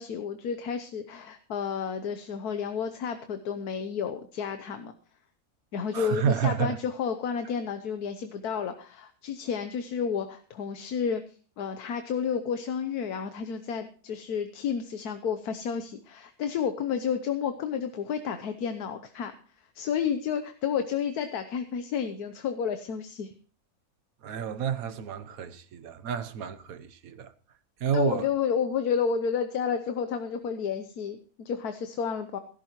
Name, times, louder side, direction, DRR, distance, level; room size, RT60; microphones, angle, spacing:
voice 1, 0.0-4.9 5.7-11.2 11.6-19.3 19.7-23.3 27.9-32.4, left 7 dB, 85° left, 1.4 m, -31 dB
voice 2, 5.9-6.8 24.2-27.3 27.8-28.2, right 7 dB, 70° right, 1.3 m, -30 dB
17.5 x 11.5 x 3.0 m
omnidirectional pair, 1.6 m